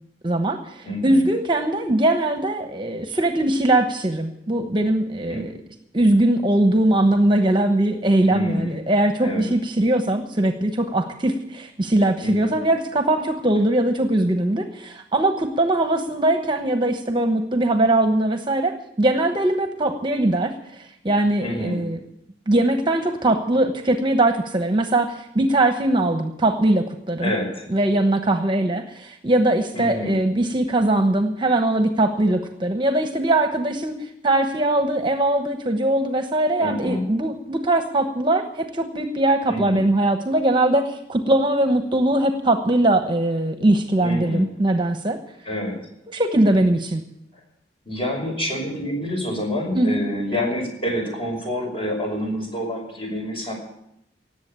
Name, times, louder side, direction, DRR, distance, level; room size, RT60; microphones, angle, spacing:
voice 1, 0.2-5.5 5.9-22.0 22.5-27.3 27.7-34.0 34.2-45.2 46.1-47.0 49.7-50.0, right 1 dB, 25° right, 6 dB, 1.1 m, -21 dB
voice 2, 0.8-1.2 5.3-5.4 8.3-8.8 9.2-9.4 12.2-12.5 21.4-21.8 27.2-27.7 29.7-30.1 36.6-37.1 39.5-39.8 44.0-44.4 45.5-45.8 47.8-53.5, left 1 dB, 30° left, 1 dB, 5.6 m, -27 dB
18.0 x 8.0 x 8.8 m, 0.79 s
head